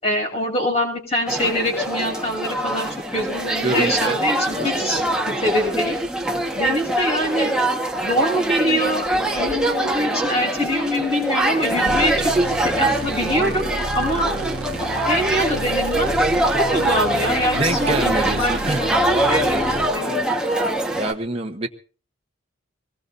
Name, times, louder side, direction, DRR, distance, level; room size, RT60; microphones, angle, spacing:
voice 1, 0.0-6.0 6.6-7.5 8.0-12.3 12.6-13.7 13.9-14.3 15.1-16.3 16.6-19.0 19.3-19.6 19.9-20.2, equal, 30° left, 1 dB, 6.9 m, -24 dB
sound 1, 1.3-21.1, right 1 dB, 5° right, 1.4 m, -23 dB
voice 2, 3.6-4.1 4.5-5.1 17.6-18.8 21.0-21.7, right 2 dB, 30° right, 3 dB, 1.1 m, -26 dB
sound 2, 11.9-19.9, right 2 dB, 85° right, 1.0 m, -32 dB
24.0 x 19.5 x 2.7 m, 0.40 s
head